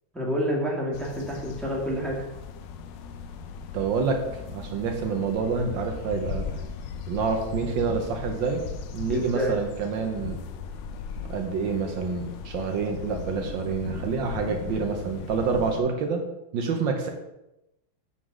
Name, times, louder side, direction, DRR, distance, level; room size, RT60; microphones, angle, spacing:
voice 1, 0.1-2.2 9.1-9.5, equal, ahead, -4 dB, 1.6 m, -28 dB
sound 1, 0.9-15.8, left 6 dB, 70° left, 1.2 m, -37 dB
voice 2, 3.7-4.2 4.5-6.5 7.1-8.6 8.9-10.4 11.3-16.2 16.5-17.1, right 5 dB, 70° right, 4 dB, 1.5 m, -27 dB
8.2 x 3.8 x 6.1 m, 0.91 s
omnidirectional pair, 2.2 m